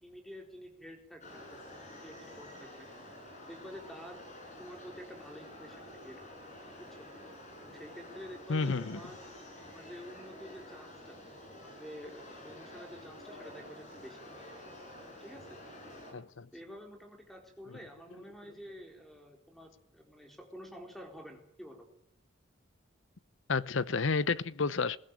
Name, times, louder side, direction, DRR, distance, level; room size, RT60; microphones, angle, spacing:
voice 1, 0.0-2.9 3.5-4.3 4.6-6.3 6.8-7.1 7.6-9.2 9.7-11.2 11.5-14.4 15.2-15.6 16.5-21.9, equal, ahead, 4.2 m, -49 dB
sound 1, 1.2-16.1, left 1 dB, 35° left, 6.6 m, -49 dB
voice 2, 8.5-9.0 16.1-16.5 17.7-17.8 23.5-25.0, left 4 dB, 80° left, 0.8 m, -31 dB
21.5 x 17.0 x 9.1 m
head